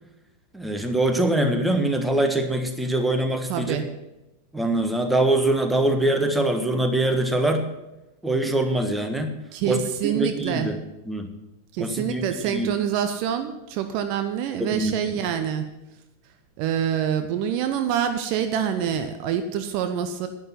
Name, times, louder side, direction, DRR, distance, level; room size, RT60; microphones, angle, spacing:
voice 1, 0.5-3.8 4.5-7.7 8.2-9.3 9.6-10.7 11.1-11.3 11.8-12.7 14.6-14.9, right 1 dB, 5° right, 6 dB, 1.4 m, -23 dB
voice 2, 3.5-3.9 9.5-10.7 11.7-15.7 16.6-20.3, right 9 dB, 45° right, 8 dB, 0.9 m, -26 dB
11.0 x 10.0 x 5.8 m, 0.97 s
figure-of-eight pair, 90°, 0 cm